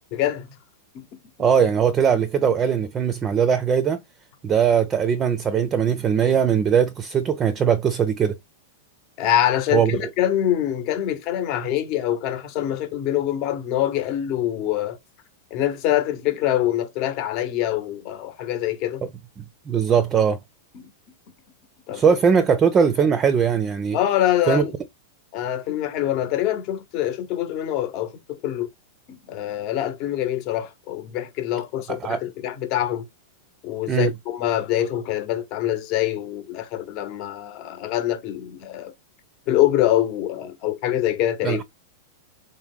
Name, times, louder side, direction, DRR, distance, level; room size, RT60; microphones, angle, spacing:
voice 1, 0.1-0.5 0.9-1.1 9.2-15.0 15.5-19.0 20.7-20.9 21.9-22.0 23.9-24.7 25.3-28.7 29.1-33.1 33.6-38.9 39.5-41.6, left 12 dB, 45° left, 0.9 m, -24 dB
voice 2, 1.4-4.0 4.4-8.4 9.7-10.0 19.7-20.4 21.9-24.0 24.5-24.7 31.9-32.2 33.9-34.1 41.4-41.6, right 7 dB, 25° right, 0.5 m, -20 dB
3.4 x 2.2 x 3.6 m
hypercardioid pair, 120°, 0 cm